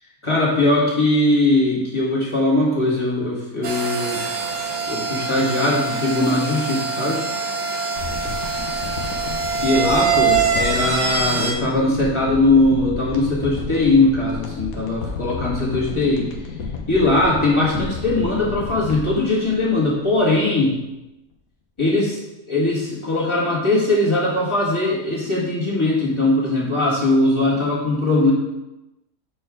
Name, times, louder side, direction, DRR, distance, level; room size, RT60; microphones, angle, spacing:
voice 1, 0.2-4.2 4.9-7.2 9.6-16.2 16.9-20.7 21.8-22.2 22.5-28.3, left 2 dB, 20° left, -7 dB, 1.7 m, -20 dB
sound 1, 3.6-11.5, right 5 dB, 55° right, 1.1 m, -24 dB
sound 2, 8.0-20.4 20.7-20.8, left 4 dB, 70° left, 1.3 m, -32 dB
7.2 x 4.3 x 3.6 m, 0.98 s
omnidirectional pair, 1.6 m